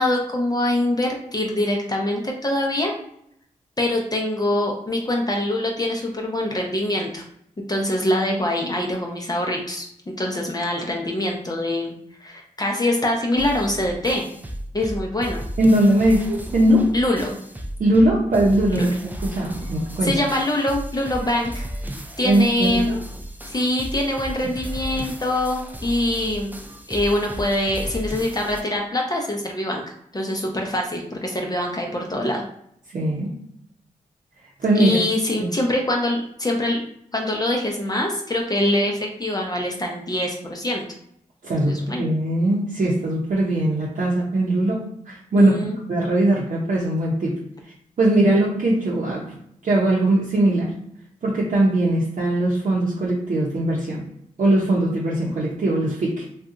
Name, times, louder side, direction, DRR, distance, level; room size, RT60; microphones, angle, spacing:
voice 1, 0.0-2.9 3.8-7.2 7.7-9.9 10.2-11.9 12.2-14.3 14.7-15.4 16.9-17.4 18.7-19.0 20.0-21.6 22.2-23.0 23.5-26.6 26.9-29.8 30.1-32.4 34.8-36.8 37.1-40.8 41.6-42.1 45.3-45.8, left 1 dB, 25° left, 0 dB, 0.7 m, -24 dB
sound 1, 13.4-28.6, equal, 10° right, 0.5 m, -34 dB
voice 2, 15.6-16.9 17.8-18.9 19.2-20.1 22.2-23.0 32.9-33.4 34.6-35.0 41.4-45.6 45.9-47.4 48.0-49.3 49.6-50.8 51.2-54.0 54.4-56.2, right 1 dB, 65° right, -6 dB, 0.8 m, -20 dB
2.6 x 2.3 x 3.7 m, 0.72 s
cardioid pair, 60°, 14 cm